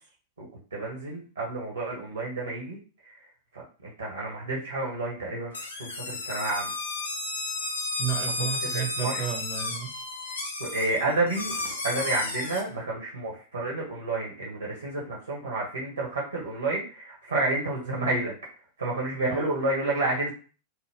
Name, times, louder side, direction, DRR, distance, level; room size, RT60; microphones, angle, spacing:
voice 1, 0.7-2.8 3.5-6.7 8.6-9.3 10.6-11.5 11.8-18.3 18.8-20.3, right 2 dB, 75° right, -2 dB, 0.9 m, -30 dB
sound 1, 5.5-12.6, left 3 dB, 70° left, 0.6 m, -33 dB
voice 2, 8.0-9.9 19.3-19.5, right 9 dB, 30° right, 3 dB, 0.6 m, -32 dB
2.9 x 2.2 x 3.4 m, 0.38 s
figure-of-eight pair, 90°, 0 cm